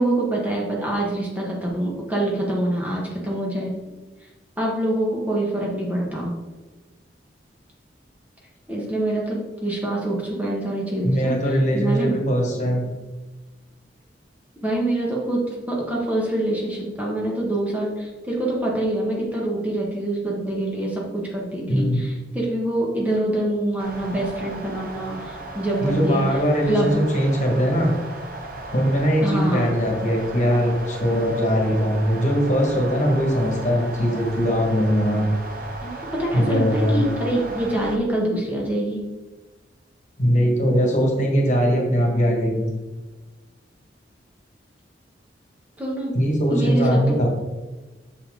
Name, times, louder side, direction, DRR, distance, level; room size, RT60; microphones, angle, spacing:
voice 1, 0.0-3.9 4.6-6.3 8.7-11.3 11.7-12.2 14.6-26.2 26.7-27.0 29.2-29.7 35.8-39.0 45.8-46.1 46.5-47.3, right 1 dB, 10° right, -3 dB, 1.3 m, -25 dB
voice 2, 11.0-12.8 21.7-22.0 25.8-27.9 28.7-35.3 36.3-37.0 40.2-42.7 46.1-47.3, equal, 45° left, 0 dB, 1.6 m, -21 dB
sound 1, 23.8-38.0, right 2 dB, 55° right, 0.9 m, -36 dB
6.8 x 5.7 x 3.8 m, 1.2 s
head